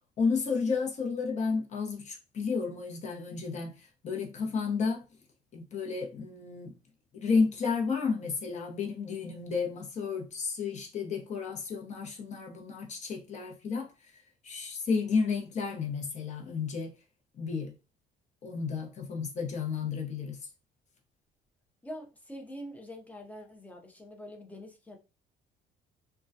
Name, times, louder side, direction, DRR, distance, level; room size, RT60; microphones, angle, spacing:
voice 1, 0.2-5.0 5.5-6.7 7.1-14.1 14.4-16.9 17.3-17.7 18.4-20.5, left 5 dB, 45° left, 0.7 m, -32 dB
voice 2, 21.8-25.0, equal, 10° left, 0.5 m, -44 dB
2.2 x 2.2 x 2.6 m
cardioid pair, 110°, 17 cm